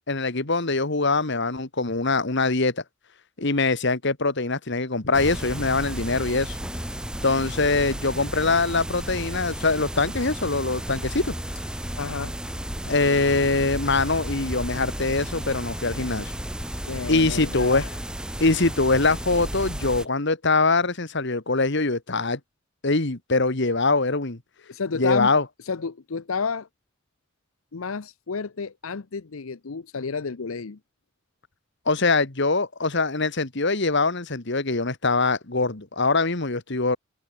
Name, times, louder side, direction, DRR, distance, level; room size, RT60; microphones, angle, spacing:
voice 1, 0.1-2.8 3.4-6.6 7.2-11.4 12.8-16.3 17.1-17.8 18.4-22.4 22.8-24.4 24.9-25.4 31.9-37.0, left 3 dB, 55° left, 1.8 m, -23 dB
sound 1, 5.1-20.1, equal, 5° right, 1.3 m, -33 dB
voice 2, 12.0-12.3 16.9-18.0 24.7-25.3 25.6-26.7 27.7-30.8, left 5 dB, 75° left, 0.7 m, -31 dB
head